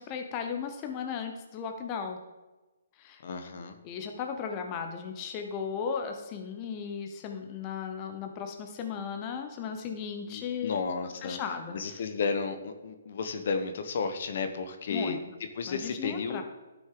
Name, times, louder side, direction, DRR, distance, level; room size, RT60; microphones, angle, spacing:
voice 1, 0.0-2.2 3.0-3.2 3.8-10.8 11.2-12.0 14.9-15.2 15.7-16.4, left 6 dB, 25° left, 5 dB, 0.8 m, -36 dB
voice 2, 3.2-3.8 10.3-11.4 11.7-15.2 15.6-16.4, left 5 dB, 55° left, 8 dB, 0.9 m, -33 dB
11.0 x 6.2 x 3.8 m, 1.2 s
hypercardioid pair, 150°, 0 cm